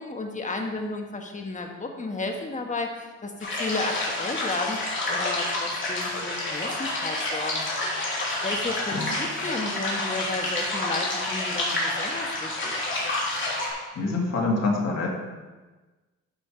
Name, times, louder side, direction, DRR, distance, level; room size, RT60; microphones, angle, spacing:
voice 1, 0.0-4.8 5.1-7.7 8.4-12.8, left 3 dB, 25° left, 3 dB, 1.5 m, -33 dB
sound 1, 3.4-13.7, left 2 dB, 40° left, 3.3 m, -29 dB
voice 2, 13.9-15.1, left 3 dB, 60° left, -1 dB, 2.4 m, -25 dB
11.0 x 5.8 x 4.6 m, 1.3 s
cardioid pair, 90°, 30 cm